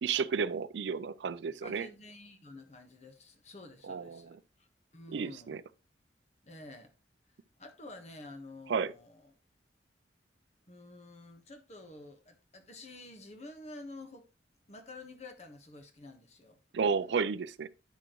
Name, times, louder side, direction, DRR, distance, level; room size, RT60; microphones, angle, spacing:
voice 1, 0.0-1.9 3.8-4.4 5.1-5.6 8.7-8.9 16.7-17.7, right 5 dB, 80° right, 0.4 m, -32 dB
voice 2, 1.6-4.7 4.9-5.6 6.4-6.9 7.6-9.3 10.7-14.3 14.7-16.6, left 2 dB, 40° left, 1.3 m, -50 dB
9.4 x 6.1 x 3.0 m
head